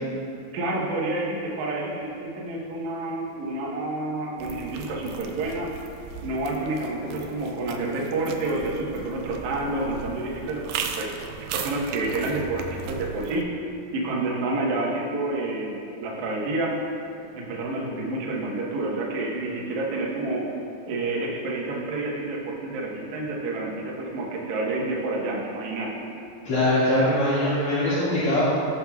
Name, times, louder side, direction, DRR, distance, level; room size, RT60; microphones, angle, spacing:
voice 1, 0.5-5.7 6.2-10.6 11.0-13.5 13.9-16.8 17.4-20.4 20.9-25.9, right 2 dB, 60° right, -3 dB, 2.2 m, -29 dB
sound 1, 4.4-13.4, right 6 dB, 85° right, 1.9 m, -37 dB
voice 2, 26.4-28.4, left 1 dB, 45° left, -13 dB, 2.2 m, -22 dB
17.0 x 7.1 x 2.3 m, 2.7 s
omnidirectional pair, 4.6 m